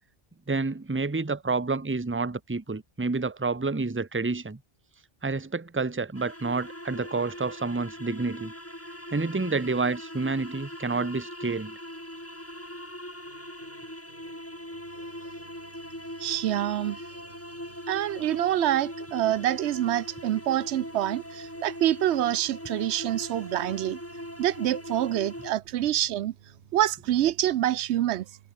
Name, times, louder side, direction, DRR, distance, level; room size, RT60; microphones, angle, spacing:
voice 1, 0.5-4.6 5.2-8.5 9.1-11.8, right 3 dB, 15° right, 0.8 m, -29 dB
sound 1, 6.1-25.5, equal, 10° left, 5.5 m, -40 dB
sound 2, 13.2-19.7 20.1-23.4 23.7-26.8, right 1 dB, 50° right, 7.9 m, -61 dB
voice 2, 16.2-17.0 17.9-24.0 24.4-26.3 26.7-28.3, right 12 dB, 90° right, 0.9 m, -26 dB
omnidirectional pair, 1.1 m